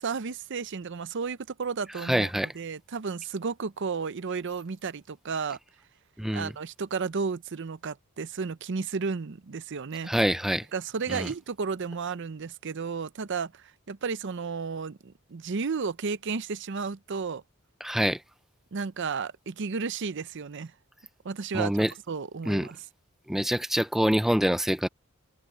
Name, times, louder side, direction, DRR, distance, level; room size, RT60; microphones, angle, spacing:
voice 1, 0.0-5.6 6.3-10.1 10.7-17.4 18.7-20.7 21.2-21.8 22.1-22.8, right 5 dB, 60° right, 0.6 m, -33 dB
voice 2, 2.0-2.5 6.2-6.5 10.0-10.7 11.1-11.3 17.8-18.2 21.5-21.9 22.5-22.7 23.3-24.9, equal, ahead, 0.4 m, -25 dB
head